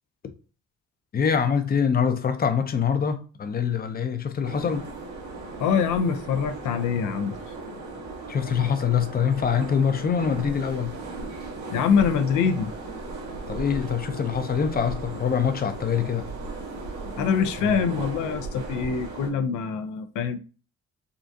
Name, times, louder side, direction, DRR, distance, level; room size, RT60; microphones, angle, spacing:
voice 1, 1.1-4.9 8.3-10.9 13.5-16.3, left 7 dB, 30° left, 0.5 m, -24 dB
sound 1, 4.4-19.3, right 3 dB, 75° right, 1.1 m, -37 dB
voice 2, 5.6-7.4 11.7-12.7 17.2-20.4, left 6 dB, 85° left, 0.5 m, -24 dB
3.7 x 2.3 x 2.6 m
cardioid pair, 90°, 30 cm